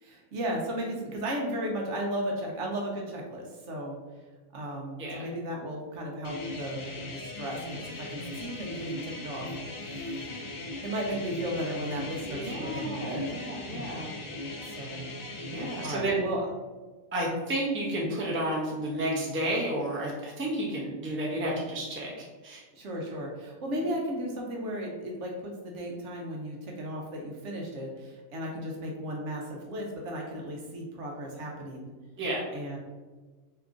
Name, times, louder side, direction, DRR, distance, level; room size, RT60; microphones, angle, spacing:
voice 1, 0.0-4.0 4.5-6.9 7.1-9.5 9.8-10.5 10.8-13.5 14.8-15.1 15.7-16.4 22.7-31.9 32.5-32.8, right 1 dB, 65° right, -1 dB, 1.0 m, -35 dB
voice 2, 5.0-5.3 12.3-14.1 15.3-16.3 17.1-22.6 32.2-32.4, right 1 dB, 15° right, -3 dB, 0.5 m, -31 dB
sound 1, 6.2-16.0, left 2 dB, 65° left, 0.4 m, -38 dB
3.6 x 2.9 x 3.6 m, 1.3 s
omnidirectional pair, 1.5 m